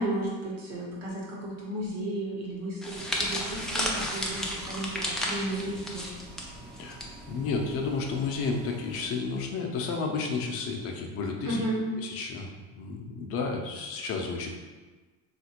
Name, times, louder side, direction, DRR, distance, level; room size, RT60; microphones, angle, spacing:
voice 1, 0.0-6.1 11.4-11.8, right 1 dB, 55° right, -4 dB, 1.1 m, -33 dB
sound 1, 2.8-7.1 7.3-7.6 8.5-8.7, left 1 dB, ahead, 0.4 m, -33 dB
Bus, 2.9-9.1, right 1 dB, 35° right, 0.6 m, -46 dB
voice 2, 7.3-11.6 12.0-14.5, left 4 dB, 50° left, 2 dB, 0.6 m, -32 dB
3.5 x 2.5 x 2.9 m, 1.3 s
cardioid pair, 120°, 30 cm